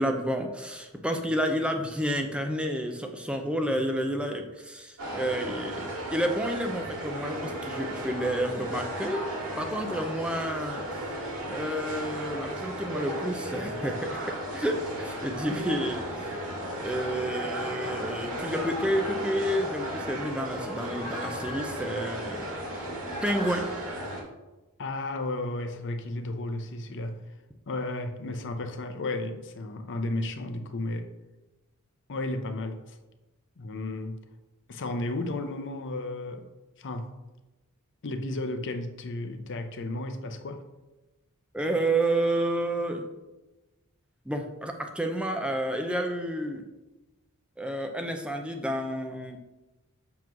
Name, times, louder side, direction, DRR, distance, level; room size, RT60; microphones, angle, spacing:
voice 1, 0.0-9.2 9.6-11.1 11.5-13.9 14.5-16.5 16.8-22.4 23.2-23.7 41.5-43.0 44.3-46.6 47.6-49.4, right 1 dB, 5° right, 4 dB, 0.5 m, -30 dB
sound 1, 5.0-24.2, equal, 75° right, 1.7 m, -35 dB
voice 2, 24.8-27.2 27.7-31.1 32.1-33.0 33.6-34.2 34.7-36.5 36.8-37.1 38.0-40.6, left 2 dB, 55° left, 7 dB, 0.6 m, -33 dB
7.2 x 3.1 x 5.9 m, 1.1 s
head